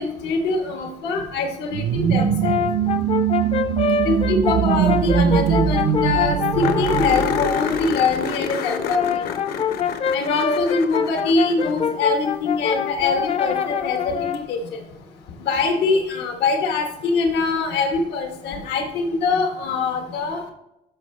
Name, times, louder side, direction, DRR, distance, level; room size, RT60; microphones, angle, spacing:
voice 1, 0.0-2.6 4.0-9.3 10.1-14.6 15.5-20.5, left 3 dB, 90° left, 3 dB, 1.3 m, -23 dB
sound 1, 1.7-8.2, right 8 dB, 60° right, 0.5 m, -22 dB
Brass instrument, 2.1-7.7 8.7-14.5, left 7 dB, 35° left, 0.4 m, -25 dB
sound 2, 5.2-5.3 5.5-5.6 5.9-6.0 6.6-12.0 14.3-14.4 17.3-17.4, left 6 dB, 70° left, 0.9 m, -29 dB
12.5 x 5.0 x 3.2 m, 0.86 s
cardioid pair, 110°, 17 cm